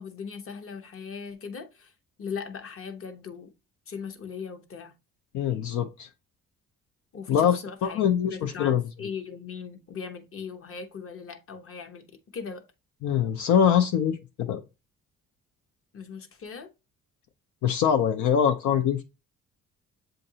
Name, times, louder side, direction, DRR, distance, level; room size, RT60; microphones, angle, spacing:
voice 1, 0.0-1.9 2.2-3.5 3.9-4.9 7.1-12.0 12.3-12.6 15.9-16.7, left 6 dB, 45° left, 0.9 m, -39 dB
voice 2, 5.3-6.1 7.3-8.8 13.0-14.6 17.6-19.0, left 8 dB, 75° left, 0.5 m, -23 dB
7.7 x 2.6 x 2.7 m
cardioid pair, 90°, 30 cm